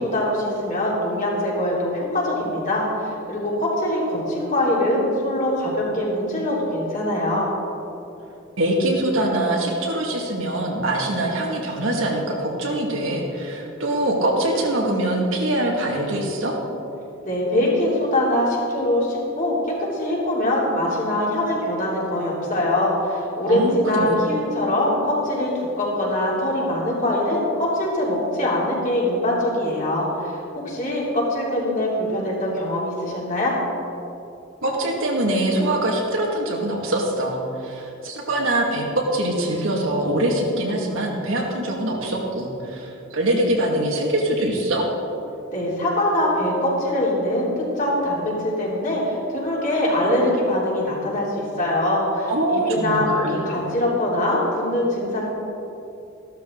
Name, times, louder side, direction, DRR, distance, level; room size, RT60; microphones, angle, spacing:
voice 1, 0.0-7.5 17.2-19.6 19.9-33.5 45.5-55.3, left 1 dB, 40° left, -5 dB, 3.4 m, -23 dB
voice 2, 8.6-16.6 23.5-24.1 34.6-44.9 52.3-53.4, right 1 dB, 75° right, -1 dB, 2.2 m, -23 dB
14.5 x 12.5 x 4.0 m, 2.9 s
head